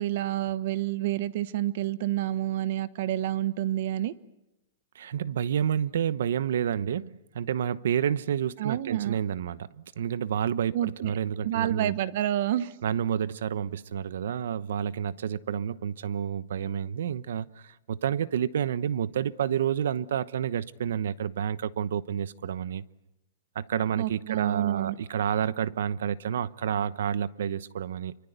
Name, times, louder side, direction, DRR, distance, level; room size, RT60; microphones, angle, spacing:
voice 1, 0.0-4.1 8.6-9.2 10.7-11.2 11.4-12.7 23.9-25.0, right 13 dB, 50° right, 1.0 m, -29 dB
voice 2, 4.9-11.9 12.8-22.8 23.5-28.2, right 9 dB, 75° right, 1.0 m, -29 dB
27.0 x 24.5 x 8.2 m
hypercardioid pair, 165°, 0 cm